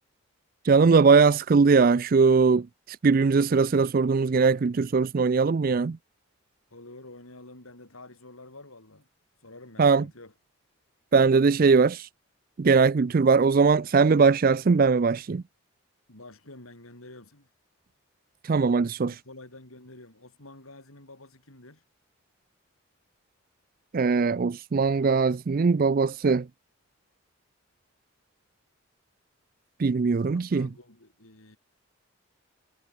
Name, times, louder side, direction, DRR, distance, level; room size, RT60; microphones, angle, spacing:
voice 1, 0.6-6.0 9.8-10.0 11.1-12.1 12.6-15.4 18.4-19.2 23.9-26.5 29.8-30.7, right 4 dB, 40° right, 0.4 m, -21 dB
voice 2, 6.7-9.1 9.4-10.3 16.1-17.5 19.0-21.8 30.3-31.6, left 2 dB, 80° left, 5.6 m, -48 dB
head